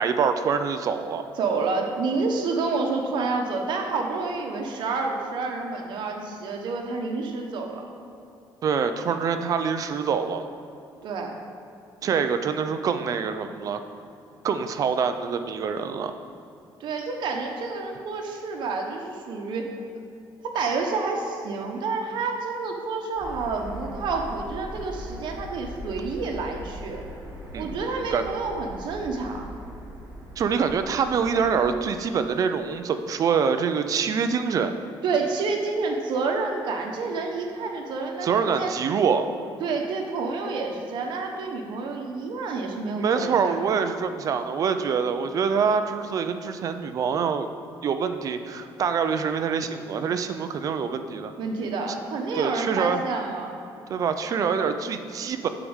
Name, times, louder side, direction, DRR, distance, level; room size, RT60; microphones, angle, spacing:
voice 1, 0.0-1.2 8.6-10.4 12.0-13.8 14.4-16.1 27.5-28.3 30.4-34.7 38.2-39.4 43.0-47.5 47.8-51.3 52.4-53.0 53.9-55.5, right 6 dB, 40° right, 9 dB, 0.5 m, -25 dB
voice 2, 1.4-7.9 11.0-11.3 16.8-19.7 20.4-27.0 27.5-29.5 35.0-38.7 39.6-43.9 51.4-53.6, right 4 dB, 60° right, 2 dB, 1.2 m, -29 dB
sound 1, 23.2-31.9, equal, 25° right, 2.1 m, -40 dB
8.4 x 4.9 x 7.2 m, 2.7 s
cardioid pair, 165°, 9 cm